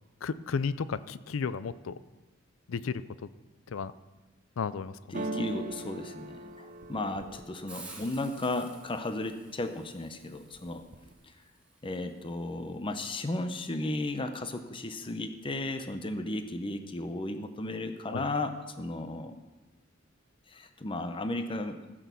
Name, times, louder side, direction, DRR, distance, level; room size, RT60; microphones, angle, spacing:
voice 1, 0.2-2.0 2.7-3.0 3.7-3.9 4.6-5.2 18.1-18.3, left 5 dB, 85° left, 16 dB, 0.5 m, -33 dB
voice 2, 5.1-10.8 11.8-19.3 20.5-21.8, left 2 dB, 25° left, 7 dB, 0.7 m, -34 dB
sound 1, 5.1-9.0 9.5-10.1 10.4-11.1, right 1 dB, 40° right, 0.7 m, -41 dB
Hiss, 7.7-13.3, right 2 dB, 5° right, 2.2 m, -53 dB
15.0 x 6.2 x 6.8 m, 1.2 s
head